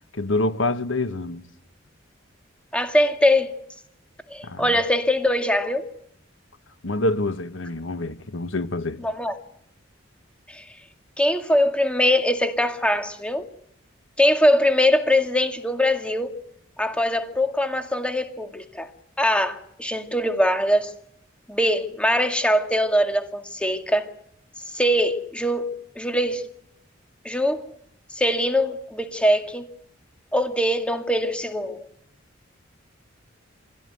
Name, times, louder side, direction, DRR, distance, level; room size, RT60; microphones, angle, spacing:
voice 1, 0.1-1.4 4.4-4.8 6.8-9.0, left 2 dB, 80° left, 1.4 m, -26 dB
voice 2, 2.7-3.5 4.3-5.8 9.0-9.3 10.5-10.6 11.2-13.5 14.2-16.3 16.8-18.9 19.2-20.9 21.5-24.1 24.7-26.4 27.2-27.6 28.2-29.7 30.3-31.8, left 1 dB, 5° left, 2.2 m, -22 dB
24.5 x 17.0 x 9.4 m
head